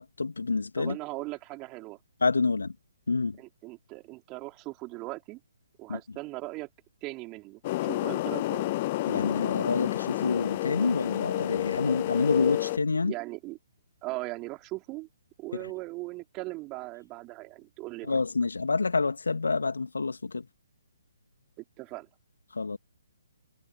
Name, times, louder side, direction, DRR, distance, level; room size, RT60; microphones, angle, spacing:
voice 1, 0.0-1.0 2.2-2.7 3.1-3.4 5.9-6.0 9.1-13.1 18.1-20.4 22.6-22.8, left 4 dB, 70° left, 2.8 m, -28 dB
voice 2, 0.8-2.0 3.4-5.4 5.8-6.7 7.0-7.6 7.9-8.7 13.0-13.6 14.0-15.1 15.4-18.2 21.8-22.1, right 22 dB, 25° right, 4.1 m, -39 dB
sound 1, 7.6-12.8, left 17 dB, 35° left, 0.4 m, -30 dB
figure-of-eight pair, 135°, 0 cm